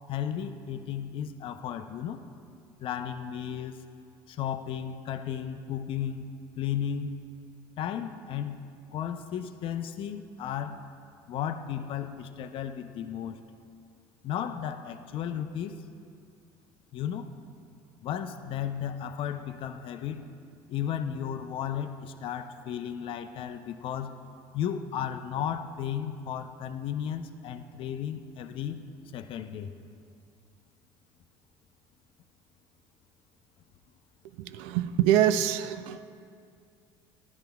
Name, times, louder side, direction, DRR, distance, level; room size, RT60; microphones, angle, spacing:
voice 1, 0.1-2.2 2.8-3.8 4.3-7.2 7.8-8.6 8.9-10.8 11.3-13.4 14.2-15.8 16.9-17.3 18.0-20.3 20.7-24.2 24.5-28.8 29.1-29.7, left 9 dB, 50° left, 8 dB, 0.5 m, -34 dB
voice 2, 34.4-36.1, right 11 dB, 80° right, 13 dB, 0.4 m, -25 dB
13.0 x 10.5 x 2.3 m, 2.4 s
supercardioid pair, 90°, 11 cm